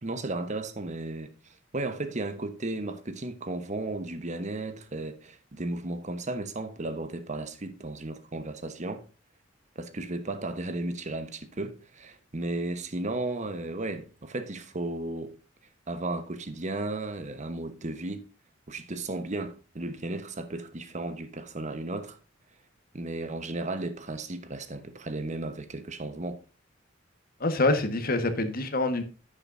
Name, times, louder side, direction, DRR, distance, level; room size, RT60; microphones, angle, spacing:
voice 1, 0.0-9.0 9.7-15.3 15.9-18.2 18.7-22.2 22.9-26.4, right 2 dB, 40° right, 1.1 m, -34 dB
voice 2, 27.4-29.0, left 2 dB, 50° left, 1.4 m, -26 dB
11.0 x 8.8 x 2.6 m
head